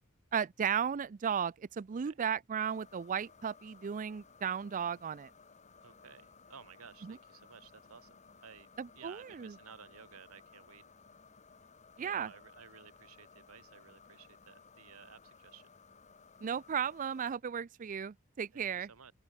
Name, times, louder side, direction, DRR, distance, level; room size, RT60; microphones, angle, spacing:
voice 1, 0.3-5.3 7.0-7.2 8.8-9.5 12.0-12.3 16.4-18.9, right 7 dB, 35° right, 0.4 m, -35 dB
sound 1, 2.6-17.4, left 5 dB, 35° left, 1.4 m, -59 dB
voice 2, 5.8-8.1 8.4-8.7 8.9-10.8 12.0-15.7 18.5-19.1, right 6 dB, 80° right, 1.3 m, -55 dB
head